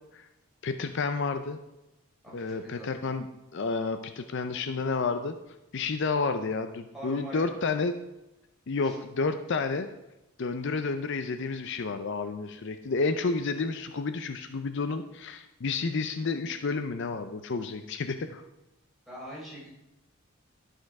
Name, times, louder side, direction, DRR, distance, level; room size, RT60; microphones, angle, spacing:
voice 1, 0.6-1.6 2.3-3.3 3.5-5.4 5.7-8.0 8.7-9.9 10.4-18.4, left 4 dB, 55° left, 9 dB, 0.5 m, -30 dB
voice 2, 2.2-3.1 6.9-7.5 8.8-9.0 19.1-19.7, equal, ahead, -6 dB, 3.9 m, -43 dB
12.0 x 6.5 x 4.7 m, 0.95 s
head